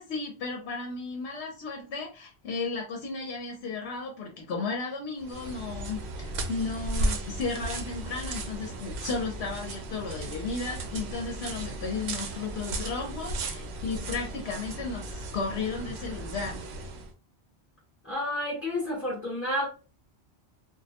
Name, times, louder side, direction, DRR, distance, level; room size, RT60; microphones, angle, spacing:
voice 1, 0.0-16.7, left 4 dB, 75° left, 1 dB, 0.8 m, -34 dB
sound 1, 5.2-17.1, right 2 dB, 75° right, 0.8 m, -35 dB
voice 2, 18.0-19.7, left 1 dB, 15° left, -5 dB, 0.7 m, -30 dB
2.3 x 2.0 x 2.8 m, 0.34 s
omnidirectional pair, 1.1 m